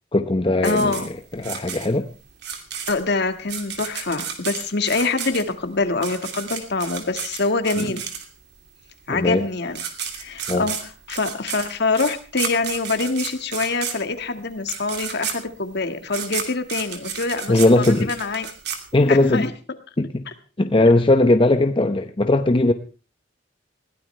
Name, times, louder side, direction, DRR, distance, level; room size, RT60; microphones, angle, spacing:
voice 1, 0.1-1.1 1.3-2.1 7.8-8.0 9.1-9.4 10.5-10.7 17.5-18.1 18.9-19.5 20.0-20.3 20.6-22.7, left 2 dB, 30° left, 7 dB, 0.8 m, -18 dB
voice 2, 0.6-1.1 2.9-8.1 9.1-9.8 10.2-18.5 19.1-19.5, left 3 dB, 60° left, 8 dB, 1.7 m, -25 dB
sound 1, 0.6-8.6 9.4-9.5 9.7-19.4, right 7 dB, 60° right, 2.7 m, -32 dB
21.0 x 16.5 x 3.3 m, 0.33 s
head